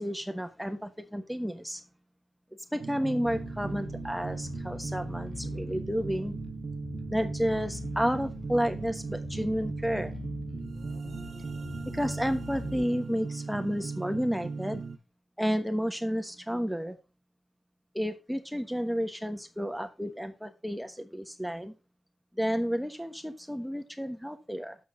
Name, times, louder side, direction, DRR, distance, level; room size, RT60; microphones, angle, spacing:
voice 1, 0.0-1.8 2.7-6.3 7.1-10.1 11.9-14.8 15.4-17.0 17.9-21.7 22.4-24.8, equal, ahead, 1.2 m, -31 dB
sound 1, 2.8-15.0, right 4 dB, 70° right, 0.8 m, -38 dB
Bass guitar, 3.2-12.8, left 4 dB, 55° left, 0.4 m, -43 dB
7.0 x 6.2 x 4.9 m
cardioid pair, 40°, 0 cm